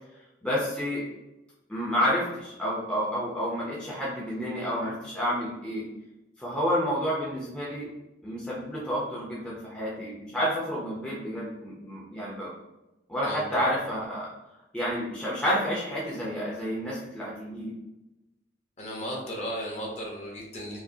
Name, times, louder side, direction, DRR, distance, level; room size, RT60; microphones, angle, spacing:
voice 1, 0.4-1.0 1.7-5.9 6.4-7.9 8.2-12.5 13.1-14.3 14.7-17.7, equal, 5° left, -7 dB, 0.6 m, -30 dB
voice 2, 13.2-13.7 18.8-20.8, equal, 35° left, -2 dB, 0.8 m, -35 dB
4.8 x 2.0 x 2.7 m, 0.99 s
head